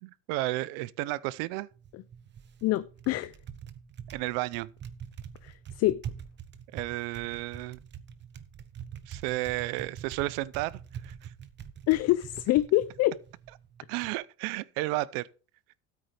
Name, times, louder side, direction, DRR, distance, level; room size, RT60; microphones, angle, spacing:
voice 1, 0.0-1.7 4.1-4.7 6.7-7.8 9.1-11.3 13.9-15.3, right 19 dB, 90° right, 0.6 m, -32 dB
Typing, 1.7-14.1, right 8 dB, 35° right, 1.0 m, -45 dB
voice 2, 2.6-3.3 5.4-6.0 11.9-13.2, left 16 dB, 55° left, 0.5 m, -26 dB
13.0 x 8.6 x 3.3 m
cardioid pair, 130°, 31 cm